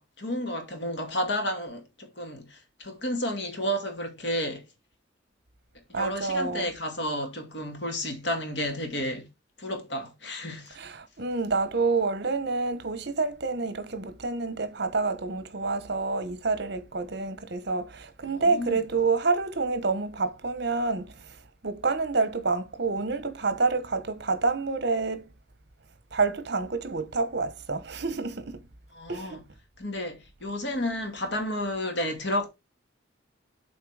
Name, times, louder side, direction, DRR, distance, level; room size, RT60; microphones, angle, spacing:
voice 1, 0.0-4.6 5.9-9.3 9.6-10.8 18.2-18.8 28.9-29.4 29.8-32.5, left 1 dB, 65° left, 2.3 m, -31 dB
voice 2, 5.9-6.6 10.8-21.1 21.6-25.3 26.1-28.6 29.1-29.4, right 4 dB, 60° right, 1.1 m, -28 dB
7.7 x 4.0 x 4.9 m
head